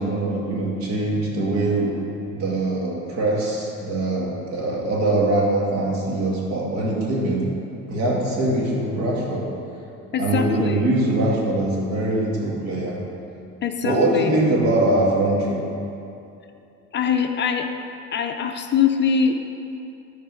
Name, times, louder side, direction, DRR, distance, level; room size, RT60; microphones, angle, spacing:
voice 1, 0.0-1.9 2.3-7.4 7.9-9.4 10.2-13.0 13.8-15.6, right 2 dB, 60° right, -3 dB, 2.3 m, -22 dB
voice 2, 10.1-10.9 13.6-14.3 16.9-17.7 18.1-19.4, left 6 dB, 35° left, 5 dB, 0.5 m, -23 dB
11.0 x 4.5 x 6.2 m, 2.7 s
cardioid pair, 130°, 31 cm